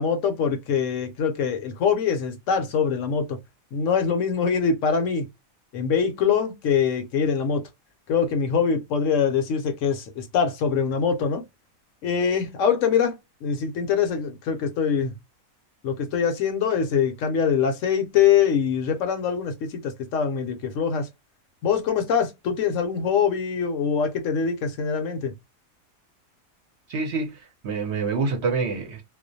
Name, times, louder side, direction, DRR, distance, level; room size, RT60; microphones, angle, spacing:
voice 1, 0.0-3.4 3.7-5.3 5.7-7.6 8.1-11.4 12.0-13.2 13.4-15.1 15.8-21.1 21.6-25.3, left 7 dB, 70° left, 0.9 m, -23 dB
voice 2, 26.9-29.0, right 4 dB, 60° right, 0.8 m, -27 dB
2.4 x 2.0 x 2.5 m
omnidirectional pair, 1.5 m